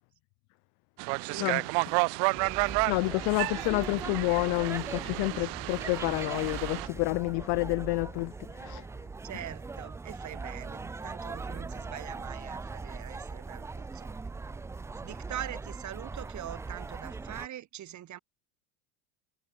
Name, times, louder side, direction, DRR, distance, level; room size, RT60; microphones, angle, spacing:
sound 1, 1.0-6.9, right 40 dB or more, 70° right, 0.6 m, -31 dB
voice 1, 1.2-1.5 5.3-5.6 9.2-14.2 15.0-18.2, right 12 dB, 40° right, 4.2 m, -43 dB
sound 2, 2.3-17.5, right 4 dB, 5° right, 0.3 m, -40 dB
voice 2, 2.9-8.9, left 34 dB, 65° left, 1.6 m, -29 dB
cardioid pair, 140°, 45 cm